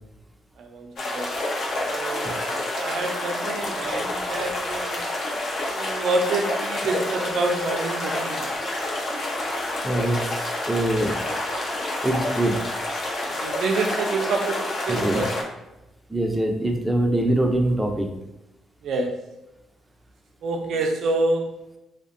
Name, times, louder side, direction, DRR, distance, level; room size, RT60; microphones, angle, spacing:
voice 1, 0.6-1.3 1.9-5.1 5.7-8.4 13.4-15.3 18.8-19.3 20.4-21.7, right 3 dB, 70° right, 3 dB, 0.4 m, -27 dB
sound 1, 1.0-15.4, left 1 dB, 60° left, 0.5 m, -28 dB
voice 2, 9.8-11.1 12.0-12.6 14.9-15.2 16.1-18.1, right 1 dB, 10° right, 2 dB, 0.4 m, -23 dB
2.5 x 2.1 x 2.5 m, 0.94 s
cardioid pair, 85°, 0 cm